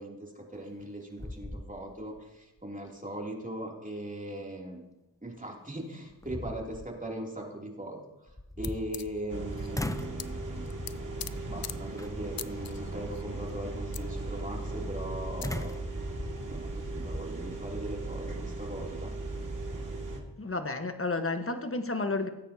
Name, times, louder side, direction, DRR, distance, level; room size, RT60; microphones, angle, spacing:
voice 1, 0.0-4.8 5.2-8.3 8.6-10.9 11.5-15.7 16.5-19.1, right 1 dB, 15° right, -1 dB, 3.0 m, -40 dB
sound 1, 0.6-0.9 1.2-2.2 2.6-2.7 5.4-5.5 6.0-6.9 8.3-9.4 9.7-10.3 10.8-11.2 12.0-12.4 15.4-17.3, left 1 dB, 5° left, 0.7 m, -39 dB
sound 2, 8.6-8.7 8.9-9.9 10.2-10.3 10.6-11.3 11.6-11.7 12.4-13.2 13.5-13.6 13.9-14.0 15.0-15.1 15.4-15.5, left 9 dB, 50° left, 0.6 m, -41 dB
sound 3, 9.3-20.2, right 2 dB, 40° right, 2.4 m, -37 dB
voice 2, 20.4-22.3, left 3 dB, 30° left, 7 dB, 1.4 m, -31 dB
18.0 x 9.1 x 2.9 m, 1.0 s
cardioid pair, 45°, 47 cm